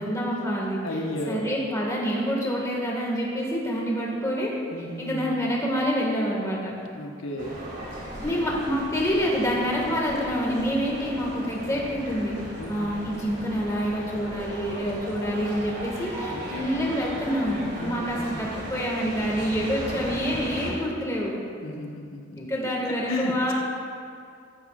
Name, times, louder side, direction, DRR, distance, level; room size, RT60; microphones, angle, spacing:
voice 1, 0.0-4.5 5.0-6.8 8.2-12.4 12.7-21.3 22.4-23.5, equal, 15° left, -3 dB, 1.8 m, -27 dB
voice 2, 0.8-1.4 4.7-5.3 6.9-7.6 12.6-12.9 16.3-16.7 17.8-18.6 21.6-23.5, left 1 dB, 90° left, 0 dB, 1.2 m, -34 dB
sound 1, 7.4-20.7, equal, 55° right, 2.8 m, -37 dB
14.5 x 14.0 x 2.5 m, 2.4 s
head